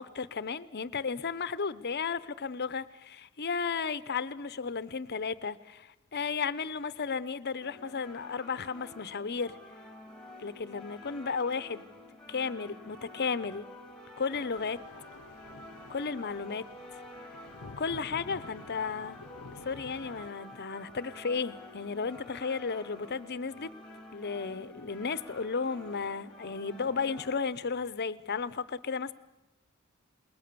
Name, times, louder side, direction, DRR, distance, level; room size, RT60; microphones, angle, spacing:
voice 1, 0.0-9.6 10.4-11.9 12.3-13.7 14.2-14.8 15.9-16.6 17.8-19.2 19.6-23.7 24.1-29.1, left 5 dB, 50° left, 16 dB, 0.8 m, -34 dB
sound 1, 7.6-27.4, left 1 dB, 5° left, 1.9 m, -49 dB
sound 2, 14.5-20.3, left 3 dB, 85° left, 0.9 m, -50 dB
28.0 x 21.0 x 6.9 m, 0.98 s
head